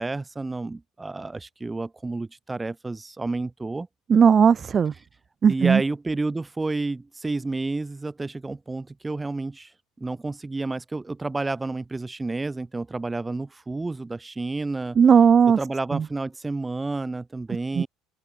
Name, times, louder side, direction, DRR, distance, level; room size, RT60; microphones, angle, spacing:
voice 1, 0.0-3.9 5.5-9.7 10.0-15.0 15.6-17.9, right 3 dB, 10° right, 7.7 m, -30 dB
voice 2, 4.1-4.9 5.4-5.8 15.0-15.6 15.9-16.0 17.8-17.9, right 7 dB, 25° right, 0.3 m, -17 dB
cardioid pair, 150°, 0 cm